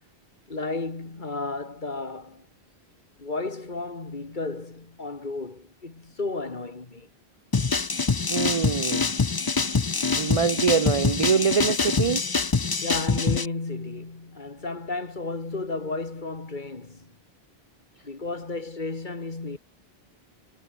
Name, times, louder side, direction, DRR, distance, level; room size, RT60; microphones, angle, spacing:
voice 1, 0.5-2.5 3.2-7.1 12.8-17.1 18.0-19.6, left 3 dB, 45° left, 2.3 m, -33 dB
Glitch Break, 7.5-13.5, left 4 dB, 25° left, 0.6 m, -25 dB
voice 2, 8.3-9.1 10.2-12.2, right 6 dB, 40° right, 0.5 m, -24 dB
omnidirectional pair, 1.1 m